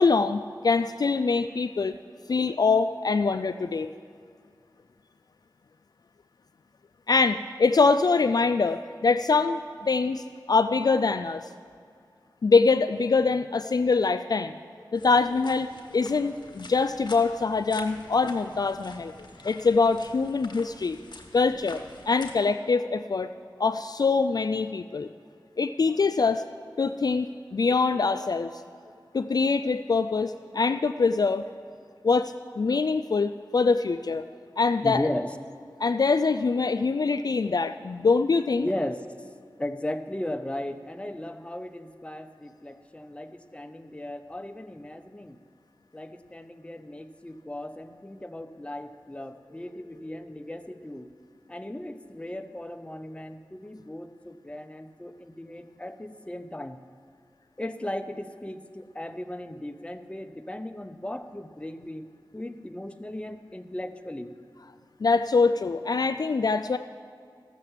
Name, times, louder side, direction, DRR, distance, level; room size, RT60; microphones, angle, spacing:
voice 1, 0.0-2.0 2.3-3.9 7.1-11.4 12.4-14.6 14.9-15.7 15.9-19.1 19.4-21.0 21.3-23.3 23.6-25.1 25.6-26.4 26.8-27.3 27.5-28.6 29.1-31.4 32.0-34.2 34.6-35.0 35.8-38.7 65.0-66.8, left 4 dB, 55° left, 9 dB, 0.3 m, -24 dB
sound 1, 14.9-22.4, left 2 dB, 70° left, 1.4 m, -47 dB
voice 2, 34.8-35.3 38.6-39.3 39.6-45.4 45.9-51.1 51.5-56.8 57.6-62.1 62.3-64.4, left 1 dB, 15° left, 8 dB, 0.7 m, -36 dB
13.5 x 6.7 x 7.3 m, 2.2 s
wide cardioid pair, 50°, 8 cm